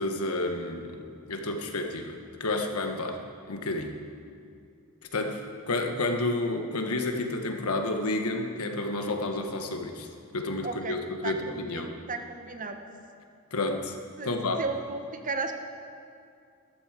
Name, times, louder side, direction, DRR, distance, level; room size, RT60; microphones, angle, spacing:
voice 1, 0.0-3.2 3.5-4.0 5.1-5.4 5.7-10.1 10.3-12.0 13.5-14.0 14.2-14.6, left 2 dB, 85° left, 4 dB, 1.3 m, -30 dB
voice 2, 10.6-11.0 11.2-12.8 14.2-14.3 14.6-15.5, right 4 dB, 40° right, 6 dB, 1.0 m, -34 dB
13.0 x 13.0 x 4.9 m, 2.4 s
head